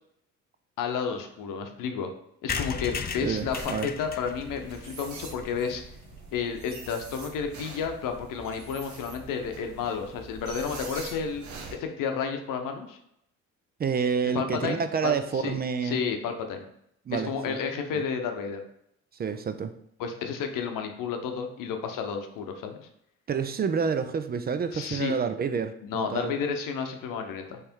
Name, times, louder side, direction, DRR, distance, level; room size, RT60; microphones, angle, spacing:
voice 1, 0.8-2.1 2.4-5.8 6.3-11.4 11.7-13.0 14.3-15.6 15.8-16.7 17.1-18.6 20.0-22.9 24.7-25.1 25.8-27.6, left 6 dB, 70° left, 5 dB, 0.8 m, -31 dB
sound 1, 2.5-6.2 6.6-6.7 6.9-7.0 7.2-7.3 7.5-7.7, left 6 dB, 30° left, 0.5 m, -36 dB
voice 2, 3.2-3.9 13.8-16.0 17.1-17.6 17.9-18.0 19.2-19.7 23.3-26.3, right 6 dB, 30° right, 10 dB, 0.4 m, -28 dB
sound 2, 3.4-11.8, right 4 dB, 55° right, 1.0 m, -44 dB
3.4 x 3.2 x 4.4 m, 0.74 s
supercardioid pair, 65°, 34 cm